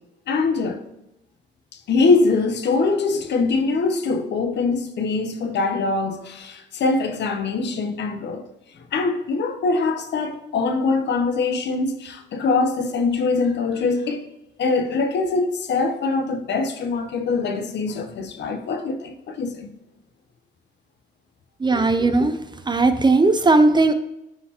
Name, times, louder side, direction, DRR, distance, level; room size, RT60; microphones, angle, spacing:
voice 1, 0.3-0.8 1.9-8.4 8.9-14.2 14.6-19.7, left 3 dB, 60° left, 0.8 m, -23 dB
voice 2, 21.6-22.4 22.7-23.9, right 3 dB, 20° right, 0.5 m, -17 dB
9.9 x 4.1 x 2.9 m
cardioid pair, 90°, 20 cm